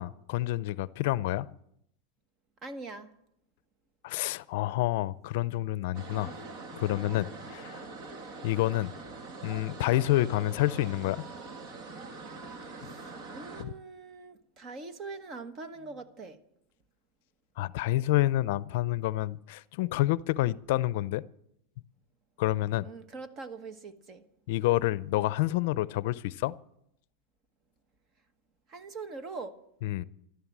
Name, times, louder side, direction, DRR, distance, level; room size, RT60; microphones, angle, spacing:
voice 1, 0.0-1.5 4.0-6.3 6.7-7.9 8.4-8.9 9.4-11.3 13.6-13.7 17.6-21.2 22.4-22.9 24.5-26.5 29.8-30.0, left 16 dB, 65° left, 0.5 m, -28 dB
voice 2, 2.6-3.1 6.2-6.5 7.2-7.5 12.8-16.4 22.8-24.2 28.7-29.6, right 3 dB, 35° right, 1.4 m, -43 dB
sound 1, 5.9-13.6, right 3 dB, 50° right, 2.0 m, -43 dB
14.5 x 12.5 x 7.4 m
supercardioid pair, 140°, 0 cm